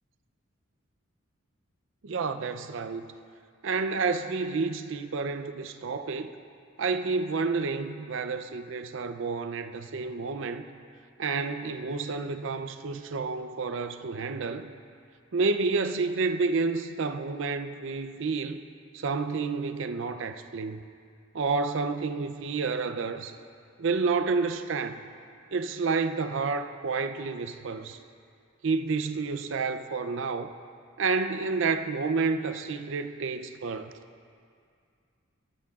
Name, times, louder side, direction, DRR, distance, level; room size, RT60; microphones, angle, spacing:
voice 1, 2.0-3.1 3.6-6.4 6.8-10.6 11.2-14.7 15.3-18.6 18.9-20.8 21.3-23.3 23.8-25.0 25.5-28.0 28.6-30.5 31.0-33.9, right 4 dB, 60° right, 0.5 m, -29 dB
18.5 x 12.5 x 2.4 m
head